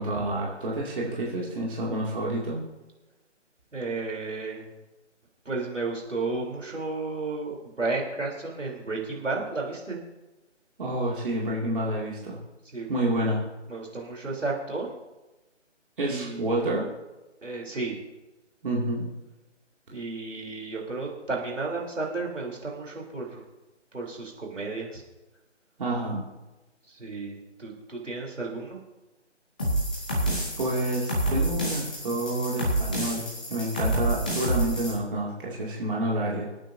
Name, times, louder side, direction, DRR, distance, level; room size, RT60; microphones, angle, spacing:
voice 1, 0.0-2.6 10.8-12.4 12.9-13.4 16.0-16.9 18.6-19.0 25.8-26.2 30.6-36.5, right 1 dB, 45° right, -4 dB, 2.6 m, -29 dB
voice 2, 3.7-4.7 5.5-10.0 12.7-13.1 13.7-14.9 16.0-16.4 17.4-18.0 19.9-23.4 23.9-25.0 26.9-28.8, right 3 dB, 85° right, -1 dB, 3.7 m, -33 dB
sound 1, 29.6-34.9, right 1 dB, 5° left, 0.7 m, -28 dB
26.0 x 9.0 x 2.8 m, 1.1 s
figure-of-eight pair, 155°, 36 cm